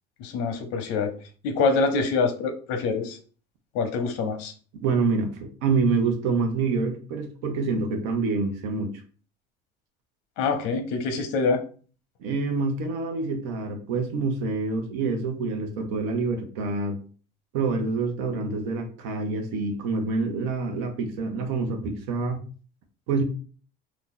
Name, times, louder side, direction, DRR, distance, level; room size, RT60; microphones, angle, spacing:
voice 1, 0.2-1.1 1.4-3.2 3.7-4.5 10.4-11.6, left 4 dB, 80° left, 7 dB, 0.8 m, -25 dB
voice 2, 4.8-8.9 12.2-17.0 17.5-22.4 23.1-23.2, right 4 dB, 90° right, 4 dB, 0.9 m, -26 dB
2.8 x 2.5 x 3.8 m, 0.40 s
cardioid pair, 180°, 21 cm